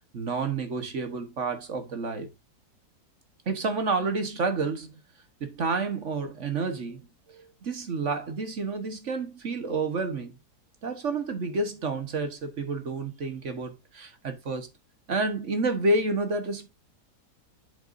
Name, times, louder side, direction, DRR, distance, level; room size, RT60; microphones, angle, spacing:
voice 1, 0.1-2.3 3.5-5.0 5.4-7.0 7.3-10.4 10.8-14.7 15.1-16.7, right 3 dB, 50° right, 1.4 m, -29 dB
8.2 x 7.9 x 2.6 m
omnidirectional pair, 1.8 m